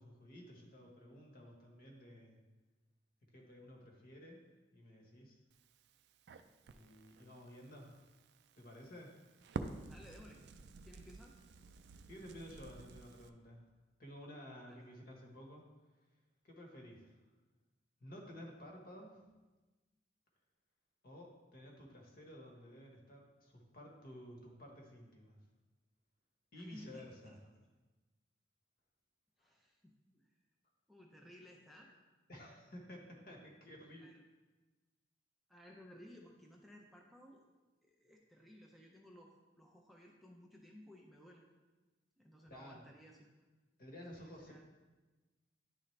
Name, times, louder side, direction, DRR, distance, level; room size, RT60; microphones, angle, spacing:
voice 1, 0.0-2.4 3.3-4.4 4.7-5.4 6.7-8.0 8.6-9.1 12.1-13.6 14.0-15.6 16.4-17.2 18.0-19.2 21.0-25.4 26.5-27.4 32.3-34.1 42.5-42.8 43.8-44.5, equal, 55° left, 0 dB, 1.2 m, -53 dB
Crackle, 5.5-13.3, right 4 dB, 65° right, 0.4 m, -50 dB
voice 2, 9.8-10.4 10.8-11.4 14.7-14.9 26.5-27.4 29.4-30.3 30.9-31.9 34.0-34.2 35.5-37.4 37.8-41.4 42.2-43.3 44.1-44.6, equal, ahead, -1 dB, 0.5 m, -58 dB
10.5 x 3.8 x 3.2 m, 1.2 s
head